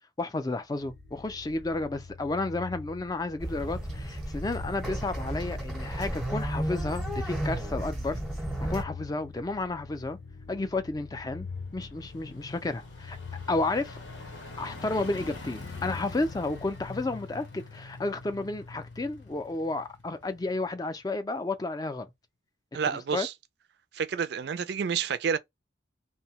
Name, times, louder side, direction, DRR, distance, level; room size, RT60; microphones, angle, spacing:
voice 1, 0.2-8.2 8.6-10.2 10.5-11.5 11.7-13.2 13.5-14.0 14.6-22.1 22.9-23.3, left 2 dB, 20° left, 0.4 m, -32 dB
sound 1, 0.7-17.6, left 5 dB, 60° left, 0.6 m, -45 dB
sound 2, 3.4-8.8, right 1 dB, ahead, 0.8 m, -33 dB
sound 3, 7.6-21.1 21.5-21.6, left 3 dB, 85° left, 0.9 m, -47 dB
voice 2, 22.7-23.3 23.9-25.4, right 7 dB, 60° right, 0.4 m, -29 dB
2.7 x 2.1 x 2.8 m
head